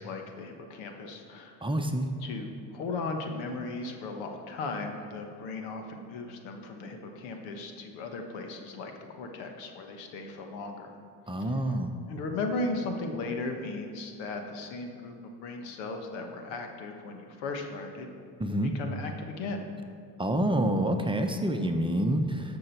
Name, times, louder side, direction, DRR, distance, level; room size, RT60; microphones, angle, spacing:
voice 1, 0.0-1.6 2.2-10.9 11.4-11.6 12.1-15.1 15.4-18.1 18.6-19.7, left 3 dB, 85° left, 4 dB, 1.2 m, -37 dB
voice 2, 1.6-2.1 11.3-11.9 18.4-18.7 20.2-22.4, right 1 dB, 10° right, 5 dB, 0.8 m, -27 dB
13.0 x 6.1 x 4.5 m, 2.4 s
supercardioid pair, 80°, 42 cm